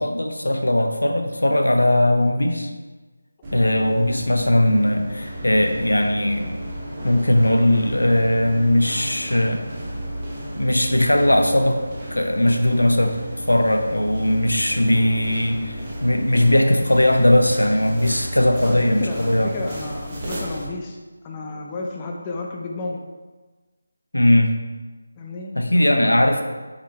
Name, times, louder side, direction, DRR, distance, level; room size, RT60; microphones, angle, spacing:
voice 1, 0.0-2.7 3.5-6.5 7.0-9.6 10.5-11.8 12.1-13.2 13.5-15.8 16.0-19.5 24.1-24.5 25.5-26.4, left 1 dB, 70° left, 4 dB, 0.8 m, -19 dB
sound 1, 3.4-20.7, equal, 20° right, 1.2 m, -33 dB
voice 2, 18.6-21.0 21.2-23.0 25.2-26.4, left 3 dB, 15° left, 0 dB, 0.5 m, -32 dB
6.6 x 4.9 x 3.3 m, 1.3 s
figure-of-eight pair, 160°, 0 cm